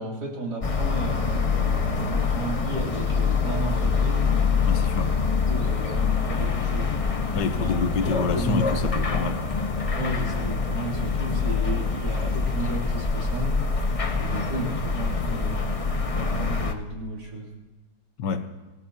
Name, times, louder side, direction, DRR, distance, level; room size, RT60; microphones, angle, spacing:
voice 1, 0.0-4.3 5.0-5.1 5.5-7.0 7.5-7.8 8.0-9.0 10.0-13.9 14.2-15.6 16.1-17.5, right 1 dB, 70° right, -3 dB, 3.7 m, -33 dB
sound 1, 0.6-16.7, left 5 dB, 40° left, 0.5 m, -25 dB
voice 2, 4.6-5.1 7.3-9.4 18.2-18.5, left 5 dB, 85° left, 9 dB, 1.6 m, -27 dB
26.5 x 16.0 x 2.8 m, 1.2 s
omnidirectional pair, 1.8 m